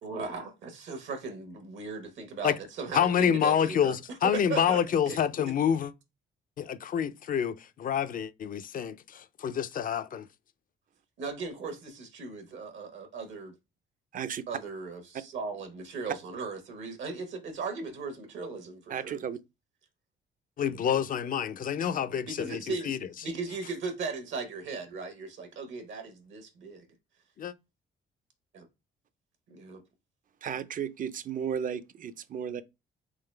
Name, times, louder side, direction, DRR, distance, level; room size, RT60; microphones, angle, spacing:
voice 1, 0.0-4.8 5.1-5.5 11.2-13.5 14.5-19.2 22.3-23.0 23.2-26.9 28.5-28.7 29.5-29.8, right 4 dB, 70° right, 1.1 m, -37 dB
voice 2, 2.9-5.9 6.6-10.3 20.6-23.0 27.4-27.5, left 8 dB, 45° left, 0.4 m, -28 dB
voice 3, 14.1-14.4 18.9-19.4 30.4-32.6, right 8 dB, 45° right, 0.5 m, -34 dB
3.8 x 3.2 x 3.2 m
cardioid pair, 90°, 20 cm